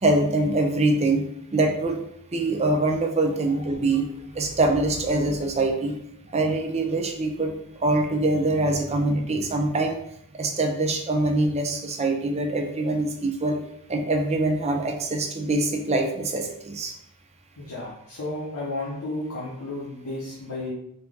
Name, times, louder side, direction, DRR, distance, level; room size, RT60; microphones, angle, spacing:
voice 1, 0.0-1.3 1.5-2.0 2.3-4.1 4.3-6.0 6.3-7.5 7.8-10.0 10.3-13.6 13.9-16.9, right 2 dB, 30° right, 3 dB, 0.6 m, -24 dB
voice 2, 17.6-20.7, left 2 dB, 90° left, -7 dB, 1.0 m, -33 dB
4.1 x 2.9 x 3.5 m, 0.74 s
head